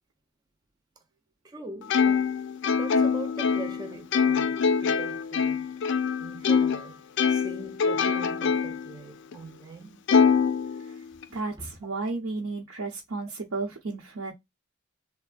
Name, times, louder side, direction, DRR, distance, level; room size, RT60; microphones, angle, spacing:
voice 1, 1.4-2.3 2.8-5.7 6.2-7.0 7.3-10.0 11.6-11.7, right 3 dB, 20° right, 0.5 m, -42 dB
Plucked string instrument, 1.9-6.8 7.2-8.9 9.3-9.4 10.1-11.2, left 6 dB, 60° left, 0.4 m, -24 dB
voice 2, 11.3-14.3, right 3 dB, 80° right, 0.9 m, -33 dB
3.4 x 2.1 x 2.3 m
head